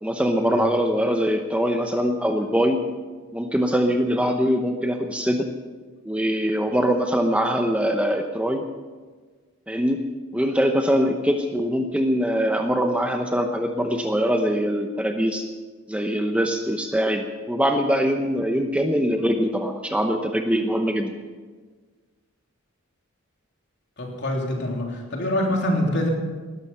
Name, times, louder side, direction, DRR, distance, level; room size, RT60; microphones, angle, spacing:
voice 1, 0.0-2.8 3.3-5.5 6.0-8.6 9.7-10.0 10.3-15.4 15.9-21.1, equal, 5° right, 4 dB, 0.9 m, -23 dB
voice 2, 24.0-26.1, left 1 dB, 50° left, 0 dB, 3.4 m, -25 dB
19.5 x 12.5 x 5.7 m, 1.4 s
head